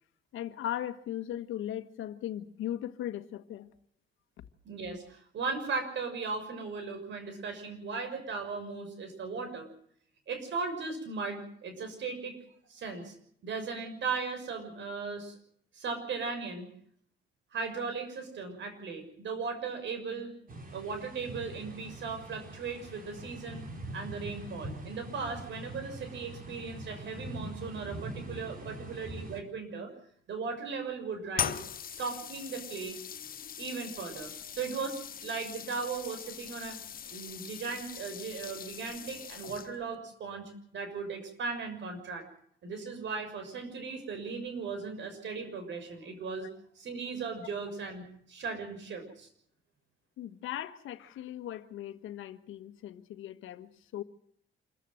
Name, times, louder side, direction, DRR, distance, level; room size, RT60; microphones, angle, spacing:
voice 1, 0.3-3.7 50.2-54.0, left 11 dB, 80° left, 1.4 m, -38 dB
voice 2, 4.6-9.7 10.3-12.4 12.7-13.1 13.4-15.3 15.7-16.7 17.5-20.3 20.7-23.7 23.9-29.9 30.3-31.6 31.9-33.0 33.6-36.8 37.1-42.3 42.6-46.5 46.7-49.3, right 4 dB, 70° right, 6.6 m, -37 dB
sound 1, 20.5-29.4, right 1 dB, 45° right, 5.0 m, -43 dB
sound 2, 31.3-39.9, left 8 dB, 45° left, 0.9 m, -40 dB
27.0 x 15.0 x 7.8 m
cardioid pair, 90°, 20 cm